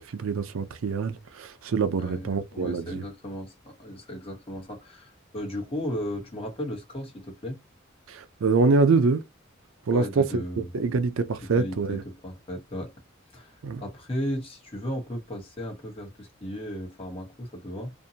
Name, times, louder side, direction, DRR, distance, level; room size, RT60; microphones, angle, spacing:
voice 1, 0.1-3.0 8.1-9.2 9.9-12.0 13.6-13.8, right 4 dB, 90° right, 0.5 m, -25 dB
voice 2, 2.0-7.6 9.9-10.7 11.4-12.9 13.3-17.9, equal, 30° left, 1.0 m, -35 dB
2.6 x 2.2 x 2.7 m
head